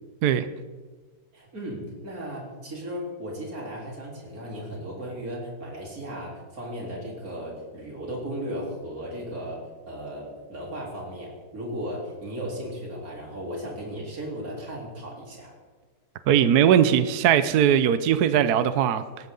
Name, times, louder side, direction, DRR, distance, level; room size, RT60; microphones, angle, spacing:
voice 1, 1.3-9.6 9.9-15.5, equal, 45° right, -3 dB, 4.3 m, -36 dB
voice 2, 16.3-19.0, right 9 dB, 65° right, 12 dB, 1.1 m, -20 dB
18.5 x 18.0 x 3.9 m, 1.4 s
omnidirectional pair, 2.1 m